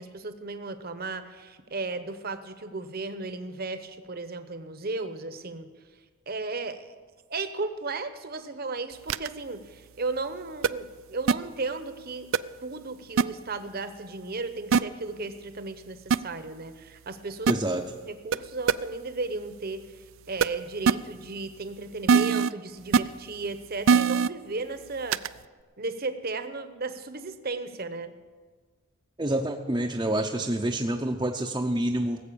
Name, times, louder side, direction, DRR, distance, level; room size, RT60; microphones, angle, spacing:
voice 1, 0.0-5.7 6.3-6.8 7.3-12.3 12.6-17.5 18.0-19.8 20.3-25.2 25.8-28.1, right 3 dB, 45° right, 10 dB, 0.9 m, -35 dB
sound 1, 9.1-9.3 10.6-10.7 11.3-11.4 12.3-12.4 13.2-13.3 14.7-14.8 16.1-16.2 17.5-17.6 18.3-18.4 18.7-18.8 20.4-20.5 20.9-21.0 22.1-22.5 22.9-23.0 23.9-24.3 25.1-25.3, right 6 dB, 60° right, 0.4 m, -20 dB
voice 2, 17.5-17.8 29.2-32.2, right 1 dB, 20° right, 0 dB, 0.6 m, -27 dB
18.5 x 7.9 x 6.9 m, 1.4 s
head